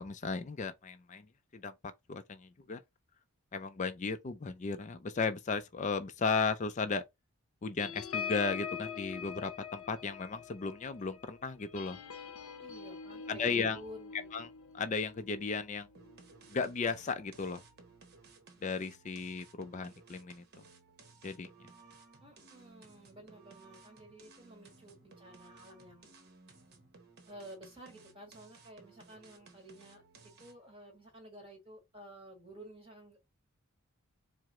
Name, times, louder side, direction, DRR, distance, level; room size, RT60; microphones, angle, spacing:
voice 1, 0.0-2.8 3.5-7.0 7.6-12.0 13.3-13.8 14.3-14.5 14.7-15.9 16.5-17.6 18.6-20.4 21.2-21.5, left 4 dB, 35° left, 0.4 m, -35 dB
sound 1, 7.8-16.7 17.1-17.4 17.6-18.0, left 7 dB, 70° left, 0.7 m, -44 dB
voice 2, 12.6-14.3 22.2-26.1 27.2-30.0 30.4-33.2, right 1 dB, 25° right, 1.6 m, -52 dB
sound 2, 16.0-30.7, right 3 dB, 45° right, 0.9 m, -59 dB
4.6 x 2.0 x 3.7 m
head